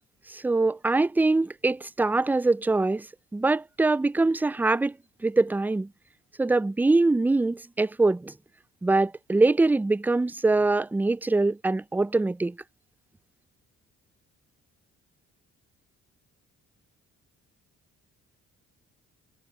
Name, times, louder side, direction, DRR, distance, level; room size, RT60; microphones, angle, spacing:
voice 1, 0.3-3.1 3.3-5.0 5.2-5.9 6.4-8.3 8.8-12.6, right 3 dB, 5° right, 0.3 m, -23 dB
cardioid pair, 90°, 30 cm